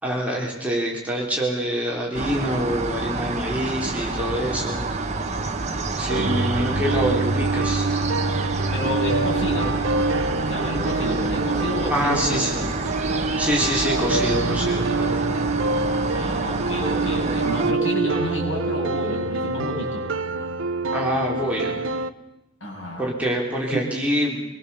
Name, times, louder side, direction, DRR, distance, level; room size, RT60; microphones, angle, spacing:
voice 1, 0.0-4.8 5.9-7.9 11.9-12.6 13.4-15.2 20.9-21.8 23.0-24.4, equal, 5° right, -3 dB, 3.9 m, -25 dB
sound 1, 2.1-17.7, right 3 dB, 35° right, 1.3 m, -28 dB
sound 2, 6.1-22.1, right 3 dB, 75° right, 0.9 m, -26 dB
voice 2, 8.7-9.8 10.4-12.4 16.1-20.1 22.6-23.1 23.7-23.8, left 1 dB, 65° left, -2 dB, 7.8 m, -29 dB
24.5 x 21.5 x 7.1 m, 0.98 s
head